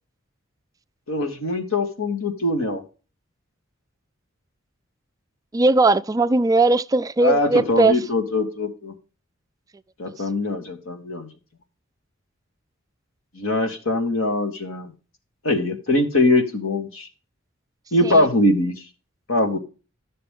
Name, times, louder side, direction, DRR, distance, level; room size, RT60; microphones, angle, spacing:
voice 1, 1.1-2.8 7.2-8.9 10.0-11.3 13.3-14.9 15.4-17.1 17.9-18.7 19.3-19.6, left 2 dB, 90° left, 2.0 m, -22 dB
voice 2, 5.5-7.9 18.0-18.3, right 2 dB, 15° right, 0.3 m, -18 dB
12.0 x 6.7 x 3.7 m
head